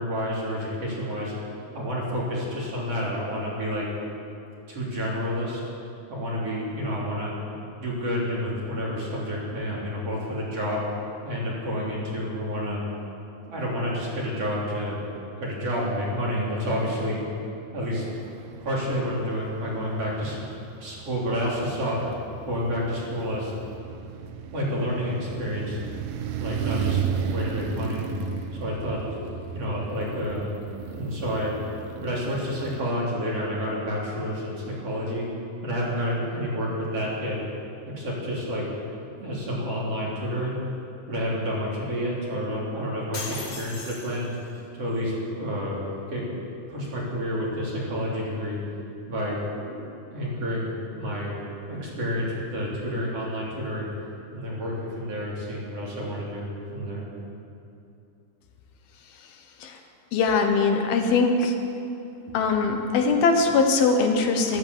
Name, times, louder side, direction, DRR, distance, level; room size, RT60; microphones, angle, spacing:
voice 1, 0.0-1.3 1.7-3.9 4.7-5.6 6.1-7.3 7.8-10.8 11.2-12.8 13.5-15.0 15.4-17.2 17.7-18.0 18.6-20.4 20.8-22.0 22.5-23.5 24.5-25.8 26.4-28.0 28.6-29.2 29.5-30.5 30.9-31.5 32.0-35.3 35.6-37.4 37.9-38.7 39.2-40.6 41.1-44.3 44.8-45.8 46.1-46.2 46.7-48.6 49.1-49.8 50.1-51.3 51.7-53.9 54.3-57.1 62.3-62.4, equal, 40° right, -6 dB, 4.2 m, -29 dB
sound 1, 18.1-32.8, right 7 dB, 75° right, 2.4 m, -34 dB
sound 2, 43.1-44.6, left 3 dB, 40° left, 1.8 m, -37 dB
voice 2, 60.1-61.6 62.3-64.6, left 4 dB, 80° left, 4 dB, 3.1 m, -21 dB
13.5 x 12.5 x 8.2 m, 2.8 s
omnidirectional pair, 4.2 m